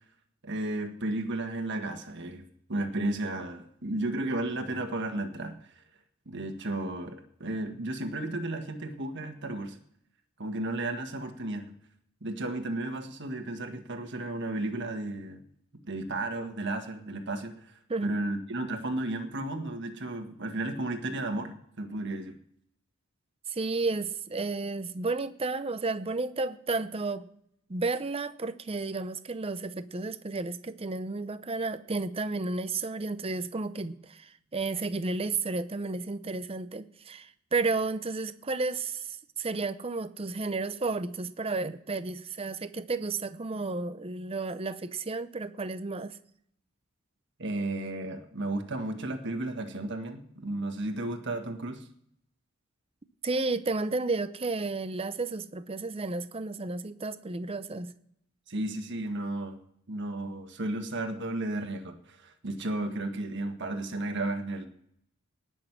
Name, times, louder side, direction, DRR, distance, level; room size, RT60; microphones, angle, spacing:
voice 1, 0.4-5.5 6.2-9.8 10.4-11.6 12.2-15.4 15.8-17.7 18.0-22.4 47.4-51.9 58.5-59.6 59.9-64.7, right 2 dB, 55° right, 6 dB, 1.6 m, -33 dB
voice 2, 23.5-27.3 27.7-46.2 53.2-57.9, right 3 dB, 30° right, 12 dB, 0.7 m, -32 dB
19.0 x 6.4 x 6.0 m, 0.71 s
head